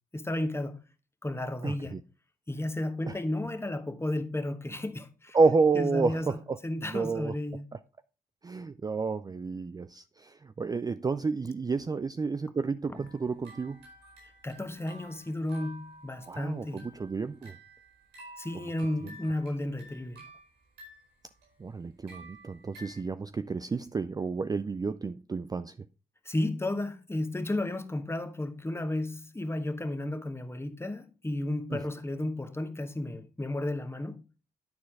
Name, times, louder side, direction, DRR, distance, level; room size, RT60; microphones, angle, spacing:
voice 1, 0.1-0.8 1.2-2.0 2.5-5.4 5.7-7.7 12.9-13.0 14.4-16.9 18.4-20.2 26.2-34.2, left 1 dB, 15° left, 1.2 m, -33 dB
voice 2, 1.6-2.0 3.1-3.2 5.3-6.6 6.9-7.3 8.4-13.8 16.3-17.5 18.5-18.6 21.6-25.7 31.7-31.8, right 4 dB, 25° right, 0.4 m, -30 dB
sound 1, 12.9-23.0, right 1 dB, 85° right, 4.9 m, -52 dB
9.6 x 4.3 x 4.7 m
supercardioid pair, 60°, 17 cm